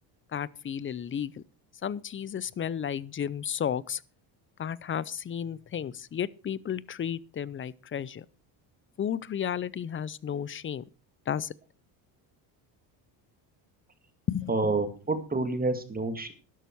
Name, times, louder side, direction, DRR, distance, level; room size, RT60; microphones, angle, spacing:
voice 1, 0.3-1.4 1.8-4.0 4.6-8.3 9.0-10.8 11.3-11.5 14.3-14.5, left 8 dB, 25° left, 0.5 m, -33 dB
voice 2, 14.5-16.3, right 3 dB, 20° right, 2.0 m, -28 dB
12.5 x 11.0 x 4.6 m
cardioid pair, 115°, 48 cm